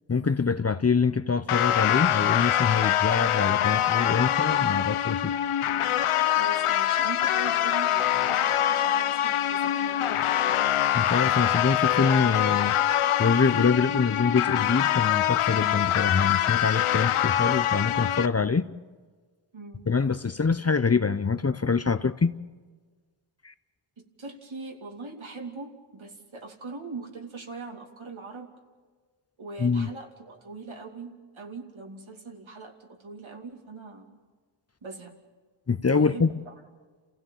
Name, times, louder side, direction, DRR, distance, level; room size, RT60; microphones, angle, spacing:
voice 1, 0.1-5.3 10.9-12.8 13.2-18.7 19.9-22.3 23.4-23.5 29.6-29.9 35.7-36.3, left 5 dB, 30° left, 0.8 m, -25 dB
sound 1, 1.5-18.3, left 11 dB, 85° left, 0.7 m, -24 dB
voice 2, 6.3-10.2 19.5-19.8 24.0-28.5 29.4-34.2 34.8-35.1 36.0-36.5, right 3 dB, 70° right, 2.8 m, -41 dB
28.5 x 16.0 x 7.4 m
cardioid pair, 50°, 49 cm